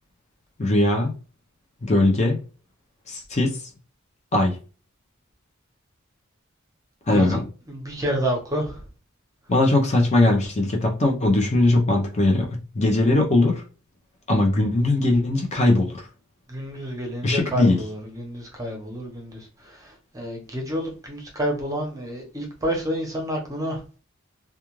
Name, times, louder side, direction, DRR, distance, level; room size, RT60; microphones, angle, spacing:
voice 1, 0.6-1.1 1.8-2.4 3.1-3.6 4.3-4.6 7.1-7.4 9.5-13.6 14.3-16.1 17.2-17.8, left 2 dB, 35° left, 0.6 m, -20 dB
voice 2, 7.7-8.8 16.5-19.9 20.1-23.8, equal, 15° right, 0.8 m, -29 dB
2.4 x 2.3 x 3.0 m
head